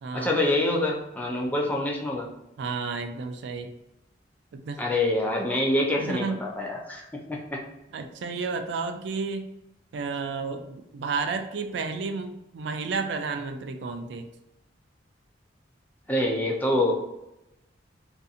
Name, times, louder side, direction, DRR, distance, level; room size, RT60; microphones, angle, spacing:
voice 1, 0.1-2.3 4.8-7.6 16.1-16.9, left 1 dB, 10° left, -1 dB, 0.4 m, -26 dB
voice 2, 2.6-3.7 4.5-4.8 6.0-6.4 7.9-9.5 9.9-14.3, right 4 dB, 65° right, 6 dB, 0.3 m, -31 dB
2.6 x 2.5 x 2.4 m, 0.88 s
head